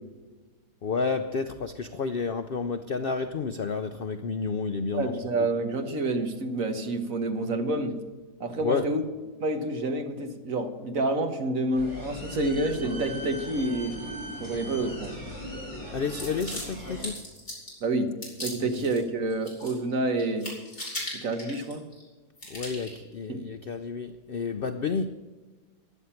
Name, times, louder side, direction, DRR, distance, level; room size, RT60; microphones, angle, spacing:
voice 1, 0.8-5.1 8.6-8.9 15.9-17.2 22.5-25.1, left 5 dB, 70° left, 9 dB, 0.5 m, -30 dB
voice 2, 4.9-8.0 8.4-9.0 9.4-14.0 14.4-15.2 17.8-20.5 21.1-21.8 23.3-23.4, right 2 dB, 55° right, 6 dB, 1.7 m, -28 dB
sound 1, 11.8-17.0, equal, 10° left, 5.9 m, -39 dB
sound 2, 16.1-17.8 18.2-19.0 19.3-19.9 20.2-22.0 22.4-23.0, left 1 dB, 30° left, 5.3 m, -38 dB
15.5 x 10.5 x 5.8 m, 1.3 s
omnidirectional pair, 1.8 m